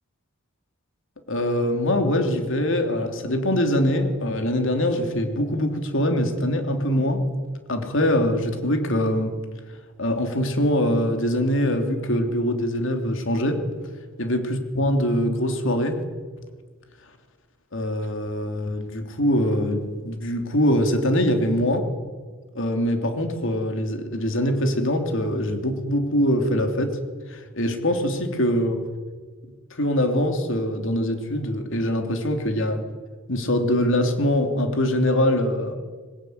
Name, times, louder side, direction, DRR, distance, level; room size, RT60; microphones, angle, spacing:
voice 1, 1.3-7.2 7.7-9.3 10.0-13.6 14.2-16.0 17.7-21.8 22.5-27.0 27.3-28.8 29.7-32.8 33.3-35.7, left 1 dB, 60° left, 5 dB, 3.2 m, -23 dB
21.5 x 20.0 x 9.6 m, 1.5 s
head